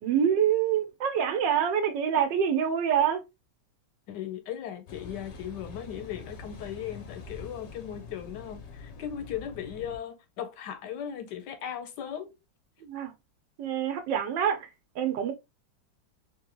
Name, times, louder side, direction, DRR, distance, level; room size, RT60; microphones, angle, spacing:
voice 1, 0.0-3.2 12.8-13.1 13.6-14.7 14.9-15.3, right 8 dB, 75° right, 1.3 m, -26 dB
voice 2, 4.1-12.3, left 9 dB, 75° left, 1.1 m, -37 dB
Car passing by / Idling / Accelerating revving vroom, 4.9-10.0, left 3 dB, 60° left, 0.7 m, -45 dB
3.7 x 3.0 x 2.9 m
omnidirectional pair, 2.1 m